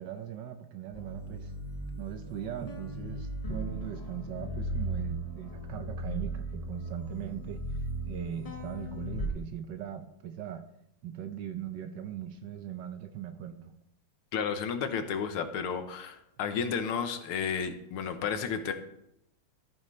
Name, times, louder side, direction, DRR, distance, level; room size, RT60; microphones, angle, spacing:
voice 1, 0.0-1.5 2.0-7.6 8.0-10.6 11.0-13.7, right 10 dB, 65° right, 8 dB, 1.2 m, -40 dB
sound 1, 0.9-9.3, right 1 dB, 20° left, 1.3 m, -37 dB
voice 2, 14.3-18.7, left 6 dB, 85° left, 8 dB, 1.9 m, -32 dB
14.0 x 9.1 x 3.2 m, 0.80 s
omnidirectional pair, 2.4 m